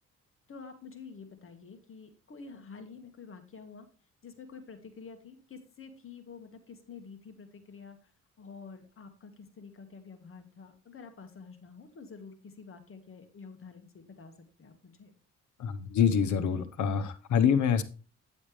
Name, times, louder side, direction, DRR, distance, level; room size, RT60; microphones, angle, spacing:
voice 1, 0.5-3.9 4.2-8.1 8.4-14.3 14.6-15.1, left 5 dB, 45° left, 1.8 m, -48 dB
voice 2, 15.6-17.8, left 7 dB, 75° left, 1.2 m, -26 dB
10.0 x 7.2 x 3.3 m
cardioid pair, 90°, 30 cm